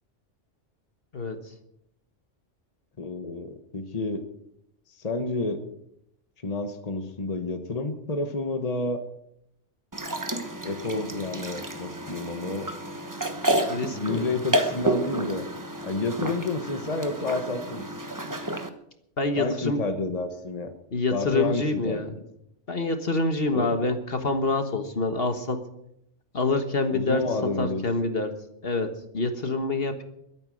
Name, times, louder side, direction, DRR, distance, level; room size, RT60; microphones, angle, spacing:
voice 1, 3.0-4.3 5.0-5.6 6.4-9.0 10.6-12.7 13.9-15.4 15.8-17.9 19.4-20.7 21.1-22.0 23.5-23.7 26.9-27.8, left 3 dB, 30° left, 7 dB, 1.4 m, -30 dB
sound 1, 9.9-18.7, right 1 dB, 15° right, 1.2 m, -30 dB
voice 2, 13.7-14.3 19.2-19.8 20.9-22.1 22.7-25.6 26.3-28.3 28.6-30.0, left 3 dB, 50° left, 7 dB, 1.6 m, -26 dB
22.0 x 9.2 x 6.5 m, 0.76 s
omnidirectional pair, 1.2 m